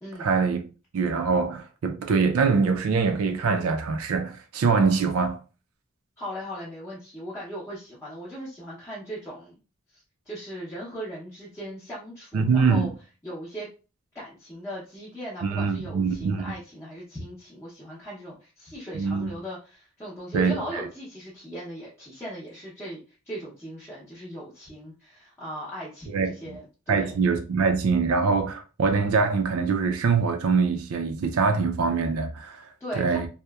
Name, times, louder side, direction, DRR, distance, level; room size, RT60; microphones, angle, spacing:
voice 1, 0.2-0.6 0.9-5.4 12.3-12.9 15.4-16.4 18.9-19.3 20.3-20.8 26.1-26.3 26.9-32.7 33.0-33.3, right 5 dB, 85° right, 0.4 m, -23 dB
voice 2, 6.2-9.6 9.9-12.9 13.2-13.7 14.1-23.0 23.3-27.2 32.8-33.2, equal, 10° left, 0.6 m, -38 dB
2.8 x 2.0 x 2.2 m
head